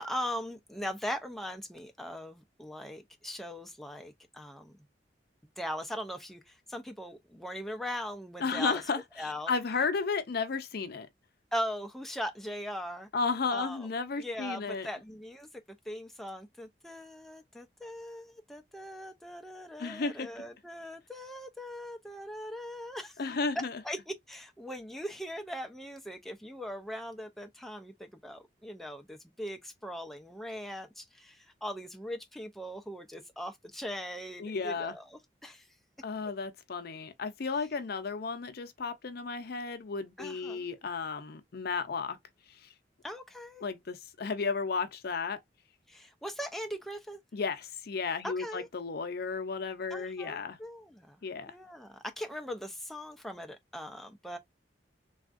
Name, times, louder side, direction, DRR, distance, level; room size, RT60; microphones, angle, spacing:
voice 1, 0.0-4.7 5.6-8.8 9.2-9.5 11.5-13.1 13.5-13.9 14.2-15.5 15.9-23.2 23.8-35.7 40.2-40.7 43.0-43.6 45.9-47.2 48.2-48.7 49.9-51.2 51.5-54.4, equal, ahead, 0.3 m, -40 dB
voice 2, 8.4-11.1 13.1-14.9 19.8-20.3 23.2-23.8 34.4-35.0 36.0-42.2 42.6-42.7 43.6-45.4 47.3-50.6 51.2-51.5, left 4 dB, 60° left, 0.5 m, -33 dB
3.4 x 2.3 x 2.4 m
head